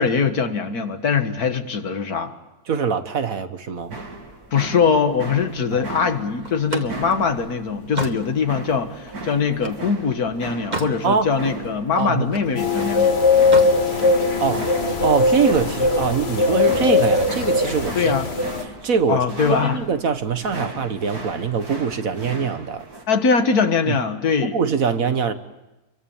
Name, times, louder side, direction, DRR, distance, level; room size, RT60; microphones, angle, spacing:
voice 1, 0.0-2.3 4.5-13.2 17.9-18.3 19.1-19.8 23.1-24.6, left 5 dB, 80° left, 7 dB, 2.2 m, -22 dB
voice 2, 2.7-4.0 5.7-5.8 11.0-11.3 12.0-12.3 14.4-14.7 15.0-18.1 18.8-19.2 19.6-22.8 23.9-24.0 24.5-25.3, right 6 dB, 65° right, 9 dB, 1.7 m, -23 dB
sound 1, 3.8-23.0, right 2 dB, 80° right, 3.7 m, -37 dB
Slam, 6.4-9.9 10.3-11.0 11.4-12.6 13.3-13.8, right 2 dB, 30° right, 2.1 m, -32 dB
sound 2, 12.6-18.6, left 3 dB, 40° left, 2.2 m, -19 dB
28.5 x 23.5 x 7.3 m, 1.0 s
omnidirectional pair, 1.6 m